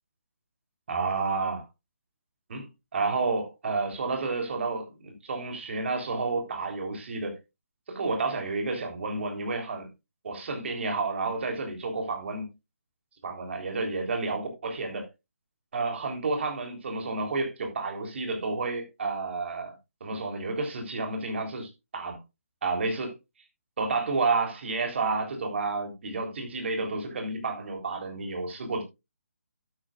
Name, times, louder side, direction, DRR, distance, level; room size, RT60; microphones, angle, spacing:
voice 1, 0.9-1.6 2.5-2.7 2.9-7.4 7.9-9.9 10.2-12.5 13.2-15.1 15.7-19.7 20.0-22.2 22.6-23.1 23.8-28.8, right 3 dB, 50° right, 3.7 m, -30 dB
12.0 x 9.8 x 2.5 m
figure-of-eight pair, 145°, 8 cm